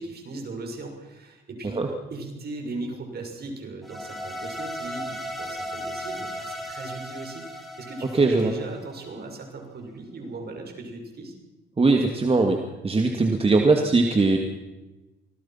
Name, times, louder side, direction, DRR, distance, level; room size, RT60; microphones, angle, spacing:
voice 1, 0.0-1.8 2.1-11.3, right 2 dB, 55° right, 4 dB, 6.6 m, -38 dB
sound 1, 3.8-9.0, equal, ahead, 4.5 m, -36 dB
voice 2, 8.1-8.5 11.8-12.6 12.8-14.4, right 3 dB, 30° right, 3 dB, 2.5 m, -20 dB
26.0 x 19.5 x 6.0 m, 1.1 s
cardioid pair, 90°, 20 cm